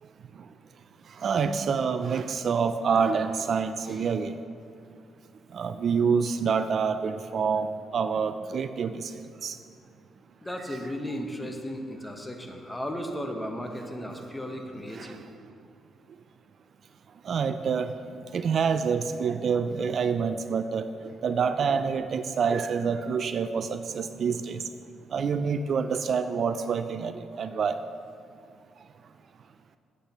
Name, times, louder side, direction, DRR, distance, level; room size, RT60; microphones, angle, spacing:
voice 1, 1.2-4.3 5.5-9.1 9.4-9.6 14.2-14.3 14.9-15.1 17.3-17.9 18.3-20.9 21.2-24.6 25.1-27.8, right 6 dB, 55° right, 10 dB, 0.3 m, -27 dB
voice 2, 10.4-15.2, equal, 10° left, 3 dB, 1.1 m, -35 dB
13.5 x 8.2 x 3.0 m, 2.4 s
cardioid pair, 90°, 0 cm